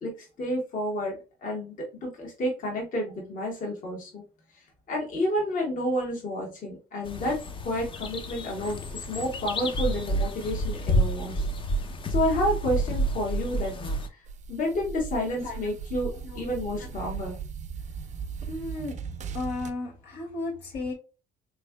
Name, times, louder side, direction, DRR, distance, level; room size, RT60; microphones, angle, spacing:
voice 1, 0.0-4.2 4.9-11.4 12.1-13.8 14.1-14.2 14.5-16.1 16.3-17.4, equal, 50° left, 1.4 m, -30 dB
sound 1, 7.0-14.1, right 1 dB, 30° left, 0.5 m, -29 dB
sound 2, 14.2-19.7, right 7 dB, 45° right, 0.5 m, -38 dB
voice 2, 18.4-19.0 19.3-20.9, left 2 dB, 85° left, 1.7 m, -35 dB
3.6 x 3.1 x 2.2 m
cardioid pair, 110°, 17 cm